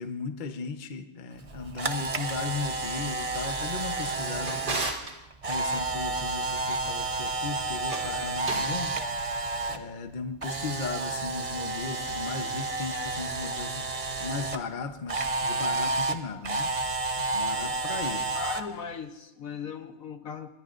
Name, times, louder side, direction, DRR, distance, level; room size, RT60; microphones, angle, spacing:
voice 1, 0.0-9.0 9.7-13.8 14.2-16.7 17.2-18.3, left 4 dB, 35° left, 7 dB, 0.8 m, -36 dB
Camera, 1.4-9.8 10.1-14.6 15.1-18.6, right 3 dB, 35° right, 0.5 m, -31 dB
Drawer open or close, 4.0-5.2 7.7-8.8, right 3 dB, 85° right, 2.9 m, -35 dB
voice 2, 18.3-20.5, left 6 dB, 60° left, 7 dB, 1.2 m, -38 dB
23.5 x 21.0 x 2.6 m, 0.98 s
omnidirectional pair, 1.8 m